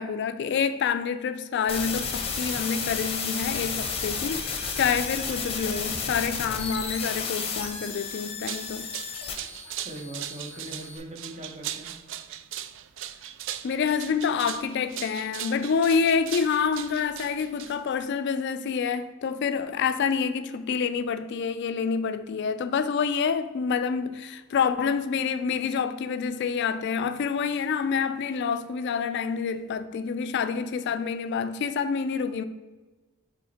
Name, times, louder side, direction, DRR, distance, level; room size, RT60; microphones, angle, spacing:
voice 1, 0.0-8.9 13.6-32.4, left 6 dB, 55° left, 0.3 m, -27 dB
sound 1, 1.7-11.0, left 5 dB, 30° left, 0.8 m, -32 dB
sound 2, 8.2-18.1, right 11 dB, 60° right, 0.3 m, -38 dB
voice 2, 9.8-11.9, right 1 dB, 30° right, 0.9 m, -40 dB
5.5 x 4.2 x 4.2 m
head